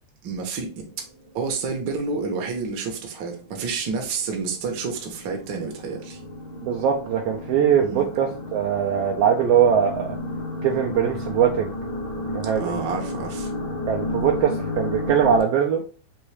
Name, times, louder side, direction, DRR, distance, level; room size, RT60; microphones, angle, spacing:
voice 1, 0.2-0.8 1.3-6.2 7.8-8.0 12.5-13.5, right 4 dB, 65° right, 1.1 m, -29 dB
sound 1, 0.7-1.8 2.2-2.3 2.8-2.9 3.2-15.4, left 2 dB, 60° left, 1.1 m, -33 dB
voice 2, 6.6-10.2 10.6-11.7 12.3-12.7 13.9-15.8, right 8 dB, 85° right, 1.4 m, -21 dB
4.6 x 3.0 x 3.2 m
omnidirectional pair, 3.3 m